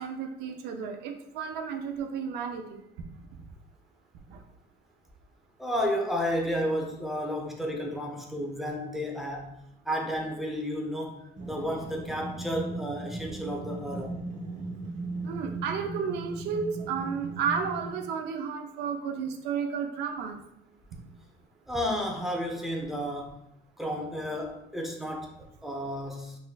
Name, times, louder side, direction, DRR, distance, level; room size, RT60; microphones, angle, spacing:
voice 1, 0.0-2.8 4.3-4.4 15.2-20.4, right 6 dB, 90° right, 5 dB, 0.5 m, -32 dB
voice 2, 5.6-9.5 9.9-14.2 21.7-23.4 23.8-26.4, equal, ahead, 0 dB, 0.6 m, -32 dB
sound 1, 11.4-18.1, right 2 dB, 50° right, 0.8 m, -38 dB
4.0 x 2.5 x 2.3 m, 0.77 s
cardioid pair, 110°, 17 cm